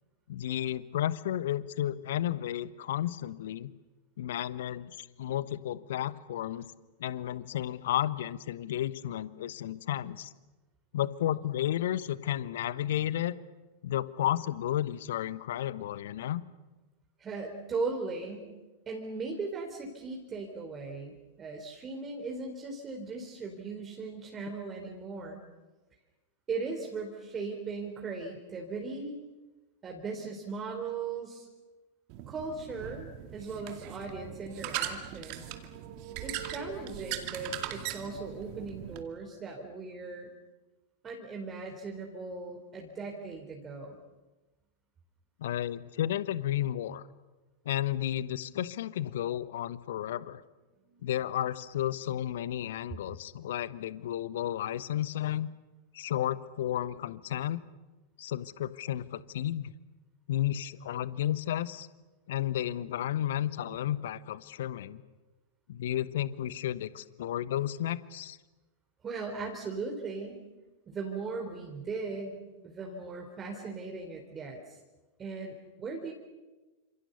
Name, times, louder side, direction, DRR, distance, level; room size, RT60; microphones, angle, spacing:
voice 1, 0.3-3.7 4.2-6.6 7.0-10.3 10.9-13.4 13.8-16.4 45.4-47.1 47.6-50.4 51.0-55.5 55.9-57.6 58.2-59.7 60.3-61.9 62.3-65.0 65.7-68.4, left 12 dB, 60° left, 16 dB, 1.1 m, -32 dB
voice 2, 17.2-18.5 18.9-25.4 26.5-29.2 29.8-31.5 32.3-35.5 36.2-40.3 41.0-44.0 50.9-51.1 69.0-70.4 70.9-74.8 75.2-76.1, right 4 dB, 20° right, 1 dB, 4.1 m, -38 dB
sound 1, 32.1-39.0, right 11 dB, 45° right, 2.4 m, -39 dB
30.0 x 27.0 x 6.9 m, 1.2 s
figure-of-eight pair, 90°, 0 cm